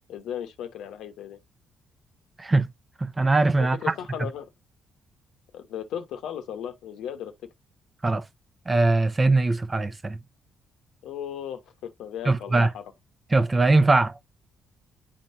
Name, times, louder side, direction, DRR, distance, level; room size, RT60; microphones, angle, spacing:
voice 1, 0.1-1.4 3.6-4.5 5.5-7.3 11.0-12.9, left 9 dB, 85° left, 1.0 m, -36 dB
voice 2, 3.0-3.9 8.0-8.2 8.7-10.2 12.3-12.7 13.3-14.2, right 2 dB, 25° right, 0.7 m, -21 dB
10.5 x 3.7 x 2.6 m
cardioid pair, 90°, 0 cm